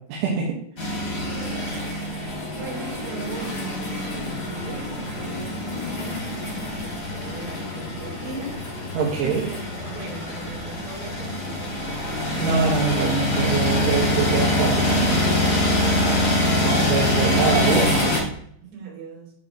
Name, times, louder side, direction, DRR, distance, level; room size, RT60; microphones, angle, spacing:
voice 1, 0.1-0.6 9.0-9.4 12.4-15.2 16.6-18.0, right 5 dB, 80° right, -4 dB, 3.8 m, -24 dB
sound 1, 0.8-18.2, left 1 dB, 30° left, 1.9 m, -25 dB
voice 2, 1.2-1.7 2.5-11.7 18.6-19.3, right 4 dB, 65° right, -4 dB, 5.4 m, -38 dB
10.5 x 7.3 x 3.0 m, 0.67 s
omnidirectional pair, 5.5 m